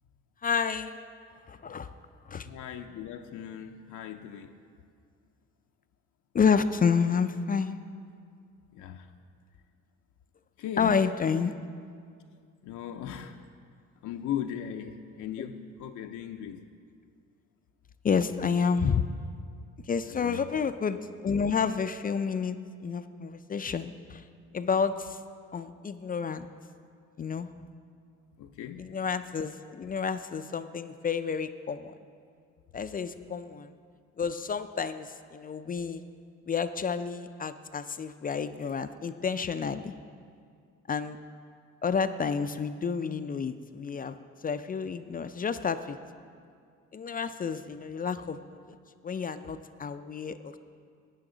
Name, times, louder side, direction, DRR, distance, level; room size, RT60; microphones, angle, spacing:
voice 1, 0.4-1.0 1.5-1.9 2.3-2.5 6.3-7.8 10.8-11.5 15.4-15.5 18.0-19.0 19.9-22.6 22.8-24.2 24.5-25.2 25.5-26.5 27.2-27.5 28.8-31.9 32.7-33.7 34.2-36.0 36.5-39.9 40.9-41.2 41.8-44.1 44.4-46.0 46.9-48.5 49.0-50.6, left 6 dB, 30° left, 11 dB, 0.4 m, -30 dB
voice 2, 2.5-4.5 8.7-9.1 10.6-11.0 12.6-13.4 14.0-16.6 20.1-20.5 28.4-28.8, left 9 dB, 75° left, 5 dB, 0.6 m, -38 dB
12.0 x 9.2 x 3.8 m, 2.2 s
cardioid pair, 90°, 30 cm